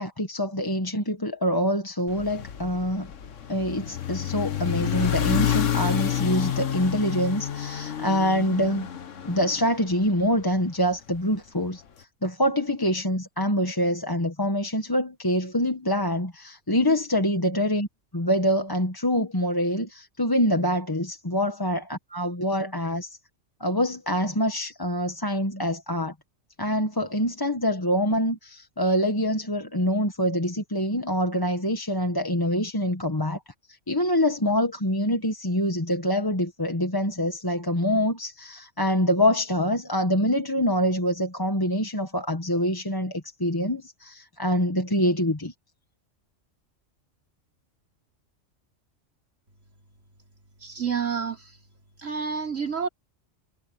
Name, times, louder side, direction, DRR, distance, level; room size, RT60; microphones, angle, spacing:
voice 1, 0.0-3.1 3.5-8.9 9.2-17.9 18.1-23.2 23.6-26.1 26.6-33.4 33.7-45.5, equal, 15° left, 1.4 m, -25 dB
sound 1, 2.1-10.4, left 9 dB, 75° left, 1.5 m, -29 dB
voice 2, 50.6-51.5 52.0-52.9, right 6 dB, 80° right, 4.4 m, -29 dB
omnidirectional pair, 1.3 m